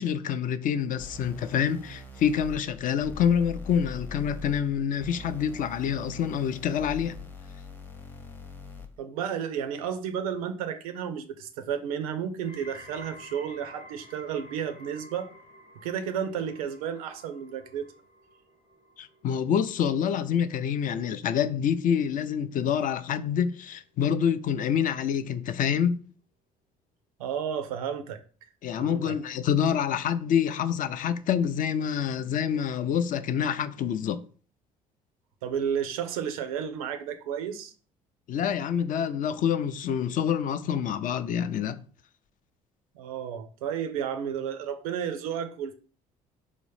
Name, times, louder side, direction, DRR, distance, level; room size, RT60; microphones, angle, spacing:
voice 1, 0.0-7.2 19.0-26.0 28.6-34.2 38.3-41.8, left 8 dB, 50° left, 0.4 m, -27 dB
sound 1, 1.0-9.0, left 2 dB, 10° left, 0.6 m, -42 dB
voice 2, 9.0-15.3 15.8-17.9 27.2-28.2 28.8-29.1 35.4-37.7 42.9-45.7, right 8 dB, 85° right, 0.4 m, -32 dB
sound 2, 12.4-23.6 23.9-24.4 25.1-25.2, left 1 dB, 65° left, 0.9 m, -52 dB
3.6 x 2.1 x 3.1 m
hypercardioid pair, 60°, 18 cm